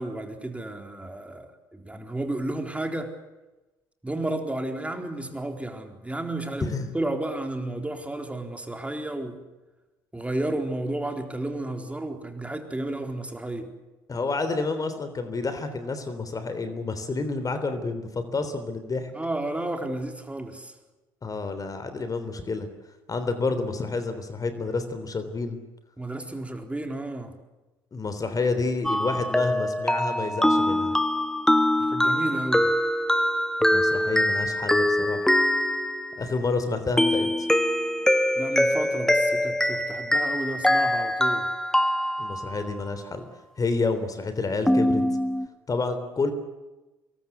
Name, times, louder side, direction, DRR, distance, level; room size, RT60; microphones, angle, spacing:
voice 1, 0.0-3.1 4.0-9.4 10.1-13.7 19.1-20.7 26.0-27.3 31.8-32.7 38.4-41.5, right 1 dB, 10° right, 5 dB, 4.0 m, -32 dB
voice 2, 6.6-6.9 14.1-19.1 21.2-22.7 23.1-25.6 27.9-30.9 33.7-35.3 36.2-37.5 42.2-43.2 43.6-45.0 45.7-46.3, left 3 dB, 30° left, 10 dB, 3.5 m, -29 dB
sound 1, 28.8-36.4 37.0-42.6 44.7-45.5, left 1 dB, 5° left, 1.5 m, -23 dB
25.5 x 22.0 x 8.2 m, 1.1 s
figure-of-eight pair, 55°, 11 cm